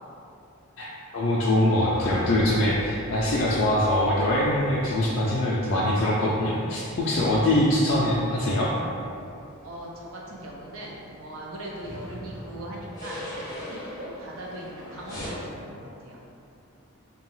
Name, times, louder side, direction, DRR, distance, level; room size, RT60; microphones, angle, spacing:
voice 1, 0.8-8.7, left 1 dB, 55° left, -6 dB, 0.3 m, -23 dB
sound 1, 1.7-15.3, equal, 15° left, 0.6 m, -42 dB
voice 2, 9.6-16.2, right 1 dB, 70° right, -3 dB, 0.5 m, -39 dB
2.6 x 2.2 x 3.1 m, 2.6 s
head